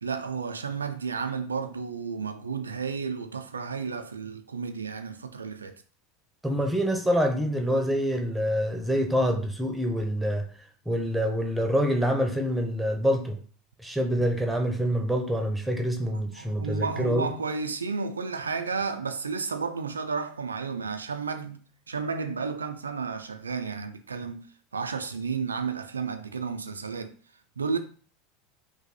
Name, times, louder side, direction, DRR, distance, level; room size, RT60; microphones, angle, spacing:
voice 1, 0.0-5.8 16.4-24.5 24.7-27.1 27.6-27.8, right 5 dB, 85° right, 0.4 m, -32 dB
voice 2, 6.4-10.4 10.9-13.4 13.8-17.3, equal, 5° right, 0.8 m, -26 dB
3.3 x 2.6 x 4.0 m
figure-of-eight pair, 80°, 0 cm